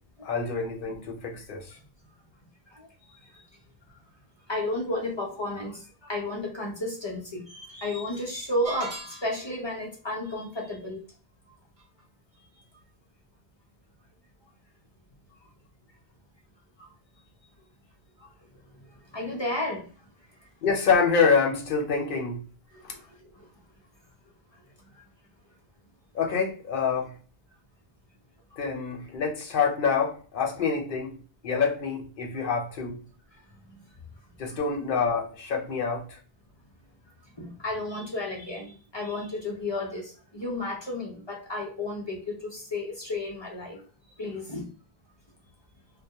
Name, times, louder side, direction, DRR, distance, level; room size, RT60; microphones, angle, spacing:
voice 1, 0.2-1.8 20.6-22.4 26.1-27.2 28.6-31.2 31.4-33.0 34.4-36.2, left 5 dB, 60° left, 0.8 m, -26 dB
voice 2, 2.7-3.4 4.5-11.0 18.2-18.3 19.1-19.9 22.7-23.1 28.5-28.6 33.7-33.8 34.5-34.6 37.4-43.8 44.2-44.7, left 1 dB, 35° left, 0.5 m, -33 dB
sound 1, 8.6-9.6, right 2 dB, 60° right, 1.1 m, -39 dB
2.2 x 2.1 x 2.7 m
omnidirectional pair, 1.1 m